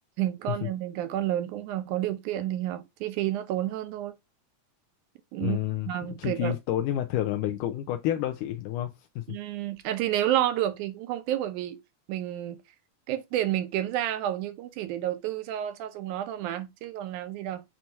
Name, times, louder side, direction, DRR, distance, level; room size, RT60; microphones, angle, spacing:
voice 1, 0.2-4.1 5.3-5.6 5.9-6.6 9.3-11.8 12.1-12.6 13.1-17.6, right 12 dB, 80° right, 2.2 m, -30 dB
voice 2, 5.4-8.9 9.2-9.3, left 12 dB, 85° left, 2.2 m, -29 dB
7.5 x 2.8 x 4.5 m
omnidirectional pair, 3.6 m